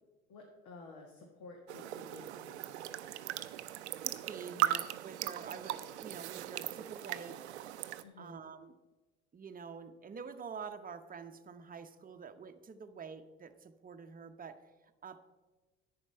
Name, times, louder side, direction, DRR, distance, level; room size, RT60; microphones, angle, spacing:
voice 1, 0.3-3.0 8.0-8.4, left 3 dB, 60° left, 1 dB, 1.7 m, -53 dB
sound 1, 1.7-8.0, right 13 dB, 85° right, 0.5 m, -38 dB
voice 2, 4.0-7.6 8.2-8.7 9.3-14.6 15.0-15.2, right 6 dB, 25° right, 8 dB, 0.9 m, -47 dB
10.5 x 8.7 x 4.3 m, 1.2 s
hypercardioid pair, 60°, 33 cm